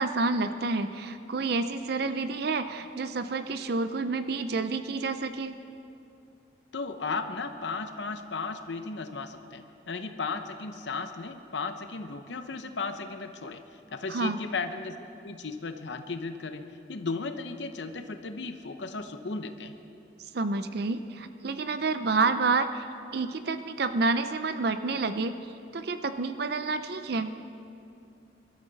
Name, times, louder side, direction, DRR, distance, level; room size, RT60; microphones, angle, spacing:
voice 1, 0.0-5.6 14.1-14.4 20.3-22.8 23.1-25.3 25.7-27.3, right 3 dB, 55° right, 10 dB, 0.5 m, -29 dB
voice 2, 6.7-15.0 15.2-19.8, left 4 dB, 65° left, 7 dB, 0.8 m, -35 dB
22.5 x 13.0 x 4.0 m, 2.6 s
head